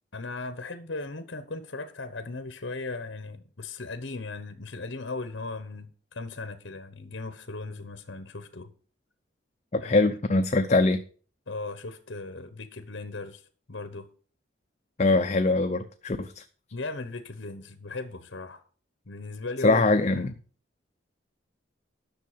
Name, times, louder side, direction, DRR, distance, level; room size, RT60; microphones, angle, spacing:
voice 1, 0.1-8.7 9.8-10.1 11.5-13.4 13.7-14.1 16.7-18.6 19.1-20.2, left 3 dB, 65° left, 1.1 m, -37 dB
voice 2, 9.7-11.0 15.0-16.4 19.6-20.3, left 2 dB, 35° left, 0.6 m, -23 dB
10.5 x 6.5 x 6.8 m
head